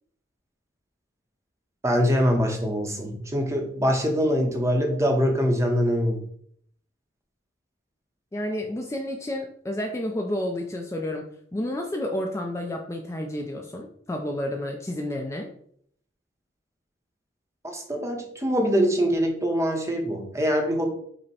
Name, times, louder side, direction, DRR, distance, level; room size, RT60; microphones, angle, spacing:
voice 1, 1.8-6.2 17.7-20.9, equal, 15° right, 2 dB, 0.7 m, -23 dB
voice 2, 8.3-15.5, left 1 dB, 15° left, 2 dB, 0.3 m, -30 dB
5.2 x 2.1 x 4.2 m, 0.65 s
head